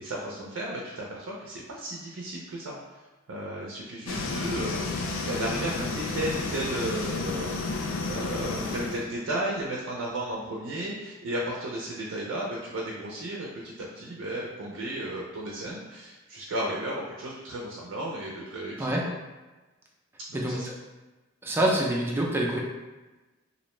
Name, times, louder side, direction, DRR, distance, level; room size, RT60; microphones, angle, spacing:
voice 1, 0.0-3.0 3.3-18.9 20.3-20.7 21.6-21.7, right 1 dB, 75° right, -3 dB, 0.4 m, -34 dB
sound 1, 4.1-9.0, left 3 dB, 80° left, 0.3 m, -31 dB
voice 2, 20.3-20.7 21.4-22.6, right 1 dB, 10° right, -2 dB, 0.3 m, -26 dB
2.5 x 2.1 x 2.9 m, 1.2 s
head